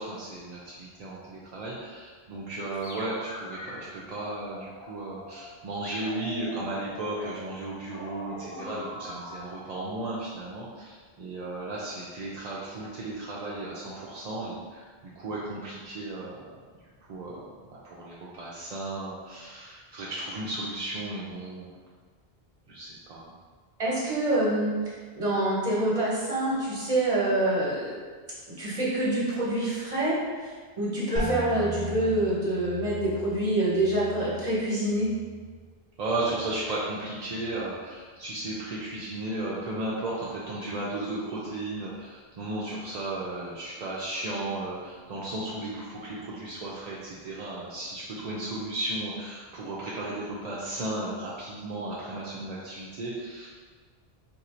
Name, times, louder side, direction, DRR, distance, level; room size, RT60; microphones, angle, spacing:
voice 1, 0.0-14.9 15.2-16.4 17.1-17.3 17.7-21.7 22.7-23.3 36.0-53.5, right 2 dB, 55° right, -6 dB, 0.5 m, -35 dB
sound 1, 2.7-3.7 4.3-5.5 5.8-9.4, left 1 dB, 75° left, 0.9 m, -42 dB
voice 2, 23.8-27.9 28.6-35.1, right 1 dB, 35° right, -7 dB, 1.1 m, -26 dB
sound 2, 31.1-36.8 37.1-37.8 38.3-38.8, right 2 dB, 20° left, 0.9 m, -39 dB
2.6 x 2.6 x 4.3 m, 1.5 s
omnidirectional pair, 1.0 m